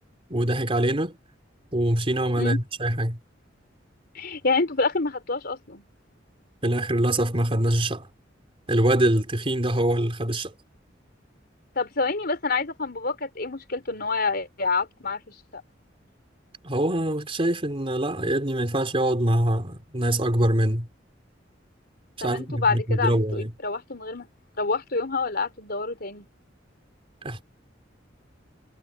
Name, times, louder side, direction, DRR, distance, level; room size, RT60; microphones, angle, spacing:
voice 1, 0.3-1.2 1.7-3.2 6.6-8.1 8.7-10.5 16.6-20.9 22.2-23.5 27.2-27.4, right 1 dB, 30° right, 3.6 m, -24 dB
voice 2, 4.1-5.8 11.8-15.6 22.2-24.3 24.6-26.3, left 4 dB, 55° left, 4.2 m, -27 dB
head